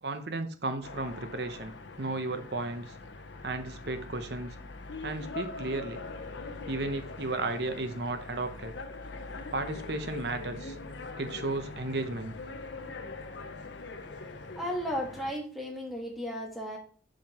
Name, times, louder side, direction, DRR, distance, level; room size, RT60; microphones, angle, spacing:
voice 1, 0.0-2.9 3.4-4.6 5.0-6.0 6.7-8.8 9.5-10.8 11.2-12.3, right 2 dB, 65° right, 8 dB, 0.9 m, -34 dB
sound 1, 0.8-15.3, left 3 dB, 85° left, 0.7 m, -42 dB
voice 2, 14.5-16.8, equal, ahead, 0 dB, 1.3 m, -35 dB
7.4 x 5.1 x 2.9 m, 0.42 s
head